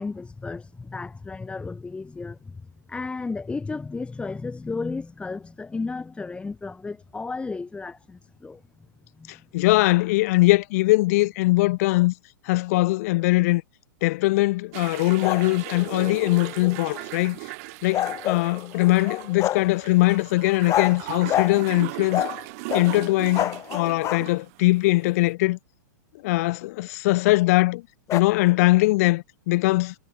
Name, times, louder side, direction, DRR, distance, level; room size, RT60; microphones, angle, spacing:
voice 1, 0.0-2.6 2.9-8.6 9.2-9.3, left 4 dB, 10° left, 4.7 m, -33 dB
voice 2, 9.3-12.1 12.5-13.6 14.0-17.4 17.8-22.2 22.7-25.6 26.2-27.8 28.1-29.9, left 20 dB, 50° left, 0.9 m, -21 dB
sound 1, 14.7-25.3, right 26 dB, 50° right, 4.4 m, -38 dB
sound 2, 15.2-17.0 17.9-19.7 20.7-21.0 21.3-21.6 22.1-22.4 22.7-24.3 28.1-28.2, left 13 dB, 30° left, 3.0 m, -28 dB
hypercardioid pair, 105°, 10 cm